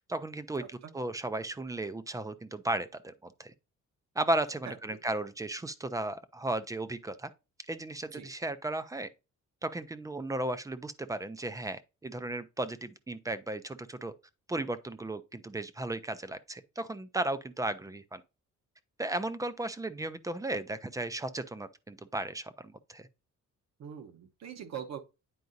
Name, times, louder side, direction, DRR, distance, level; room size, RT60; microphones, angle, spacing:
voice 1, 0.1-3.5 4.2-7.3 7.7-9.1 9.6-14.1 14.5-18.2 19.0-23.1, right 2 dB, 10° right, 0.3 m, -35 dB
voice 2, 23.8-25.0, right 8 dB, 55° right, 1.0 m, -42 dB
9.3 x 4.7 x 2.6 m
cardioid pair, 175°, 32 cm